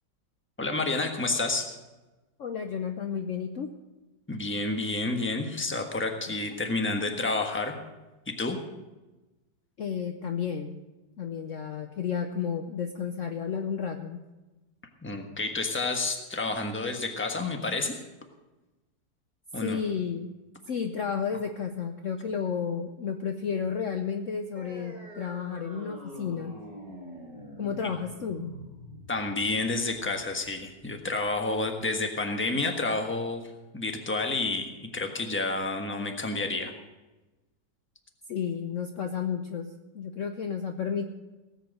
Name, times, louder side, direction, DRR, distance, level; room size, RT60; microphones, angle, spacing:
voice 1, 0.6-1.8 4.3-7.8 8.3-8.6 15.0-18.0 19.5-19.8 29.1-33.4 33.7-36.7, left 3 dB, 10° left, 4 dB, 1.1 m, -30 dB
voice 2, 2.4-3.7 6.3-6.6 9.8-10.8 11.2-14.2 19.6-20.3 20.7-26.5 27.6-28.5 38.3-41.1, left 7 dB, 55° left, 6 dB, 1.0 m, -32 dB
sound 1, 24.6-31.6, equal, 20° right, 4.3 m, -45 dB
18.0 x 8.1 x 6.4 m, 1.1 s
omnidirectional pair, 1.9 m